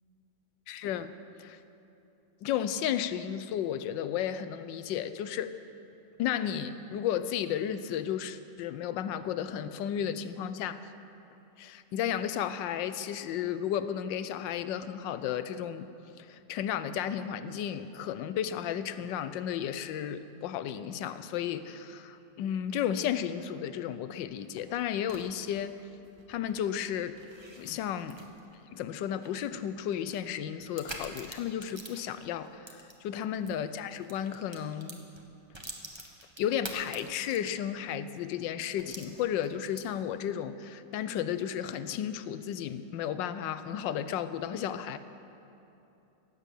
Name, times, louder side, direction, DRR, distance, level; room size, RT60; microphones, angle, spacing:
voice 1, 0.7-1.1 1.4-1.6 2.4-5.5 6.2-10.8 11.6-15.9 16.2-25.8 26.3-27.2 27.5-28.2 28.7-35.0 36.4-45.0, left 9 dB, 90° left, 13 dB, 1.3 m, -33 dB
sound 1, 24.3-33.6 33.9-37.8 38.1-38.2 38.8-40.1, right 1 dB, 20° right, 1.0 m, -48 dB
17.0 x 7.4 x 8.3 m, 2.9 s
omnidirectional pair, 1.9 m